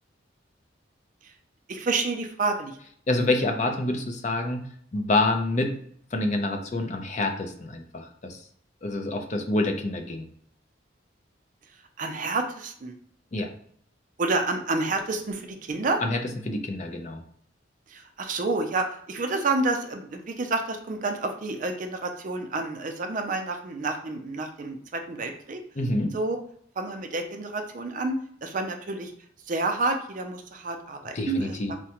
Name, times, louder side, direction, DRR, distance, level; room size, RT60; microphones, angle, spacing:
voice 1, 1.7-2.8 12.0-12.9 14.2-16.0 17.9-25.6 26.1-26.4 26.8-29.1 29.5-31.6, right 3 dB, 45° right, 5 dB, 0.4 m, -29 dB
voice 2, 3.1-4.6 4.9-5.7 6.1-8.4 8.8-10.3 13.3-13.5 16.0-16.2 16.5-17.2 25.8-26.1 31.1-31.7, left 2 dB, 40° left, 4 dB, 0.5 m, -27 dB
4.6 x 2.1 x 2.8 m, 0.62 s
head